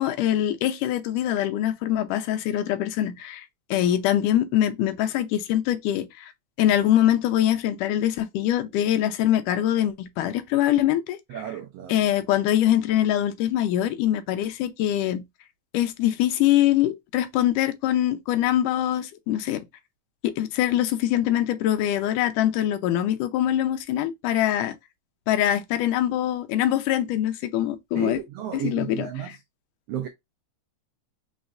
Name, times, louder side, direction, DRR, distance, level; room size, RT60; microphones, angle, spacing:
voice 1, 0.0-3.5 3.7-6.3 6.6-11.2 11.9-15.2 15.7-19.6 20.2-24.8 25.3-28.2 28.5-29.4, left 12 dB, 85° left, 2.2 m, -23 dB
voice 2, 11.3-12.0 27.9-29.3 29.9-30.1, right 9 dB, 80° right, 1.4 m, -33 dB
5.1 x 3.8 x 2.4 m
omnidirectional pair, 3.7 m